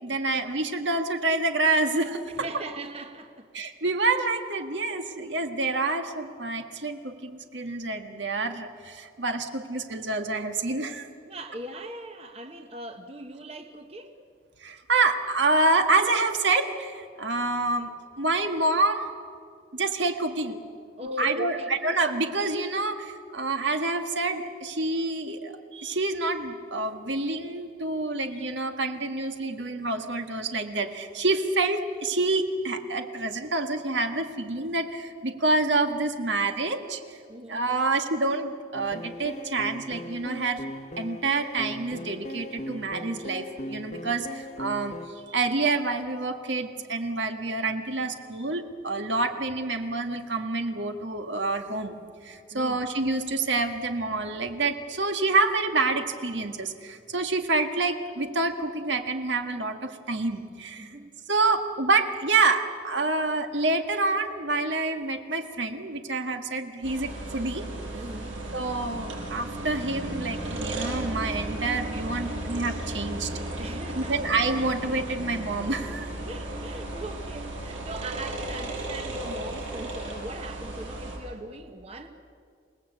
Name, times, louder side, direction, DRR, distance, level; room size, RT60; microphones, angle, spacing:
voice 1, 0.0-2.5 3.5-11.0 14.6-17.9 18.2-19.1 19.7-20.6 21.2-37.2 37.5-40.6 41.0-51.9 52.2-60.9 61.3-67.7 68.5-73.3 73.9-76.1, right 3 dB, 70° right, 6 dB, 1.7 m, -27 dB
voice 2, 2.3-3.5 11.2-14.2 21.0-21.8 37.3-37.6 52.5-52.8 60.8-61.5 67.9-68.4 73.6-74.2 76.3-82.1, right 1 dB, 30° right, 5 dB, 1.2 m, -40 dB
sound 1, 38.7-45.1, equal, 35° left, 1.2 m, -38 dB
sound 2, 66.8-81.2, right 1 dB, 85° right, 7.8 m, -35 dB
28.0 x 19.0 x 8.3 m, 2.2 s
head